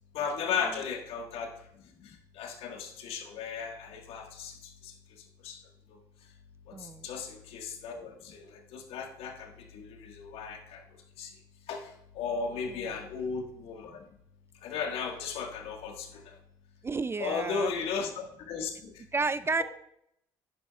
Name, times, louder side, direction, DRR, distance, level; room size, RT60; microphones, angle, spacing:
voice 1, 0.1-1.5 2.4-4.5 4.8-4.9 5.4-5.6 7.0-8.5 8.7-10.8 11.2-11.3 11.7-11.9 12.2-14.0 14.6-16.3 17.2-18.9, left 5 dB, 70° left, 3 dB, 1.7 m, -35 dB
voice 2, 6.7-7.1 12.7-13.0 16.8-17.7 19.1-19.6, right 4 dB, 25° right, 15 dB, 0.4 m, -31 dB
10.5 x 9.1 x 2.4 m, 0.74 s
supercardioid pair, 70°, 10 cm